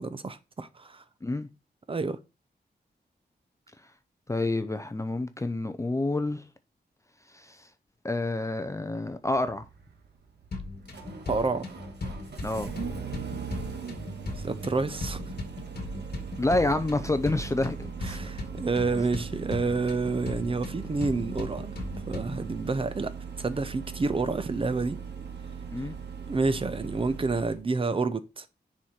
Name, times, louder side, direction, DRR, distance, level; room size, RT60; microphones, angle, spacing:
voice 1, 0.0-1.0 1.9-2.2 11.3-11.7 14.4-15.2 18.0-21.7 22.1-23.1 23.4-25.0 26.3-28.4, right 3 dB, 30° right, 0.7 m, -29 dB
voice 2, 4.3-6.4 7.3-7.7 8.0-9.7 12.4-12.7 16.4-18.2 25.7-25.9, left 2 dB, 15° left, 0.6 m, -28 dB
Engine starting, 9.3-27.6, right 6 dB, 75° right, 1.7 m, -40 dB
sound 1, 10.5-22.5, left 2 dB, 65° left, 2.2 m, -38 dB
10.0 x 4.7 x 4.4 m
wide cardioid pair, 160°, 17 cm